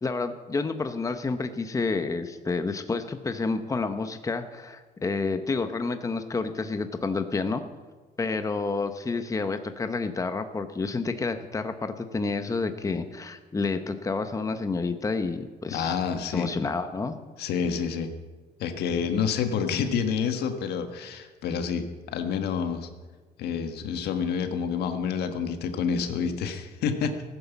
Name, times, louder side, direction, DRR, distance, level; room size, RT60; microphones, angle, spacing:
voice 1, 0.0-7.6 8.2-16.0 16.3-17.2, left 4 dB, 20° left, 8 dB, 0.9 m, -29 dB
voice 2, 15.7-16.5 17.4-18.1 18.6-22.9 23.4-27.2, left 6 dB, 75° left, 7 dB, 1.6 m, -28 dB
16.0 x 9.4 x 7.2 m, 1.3 s
cardioid pair, 110°, 17 cm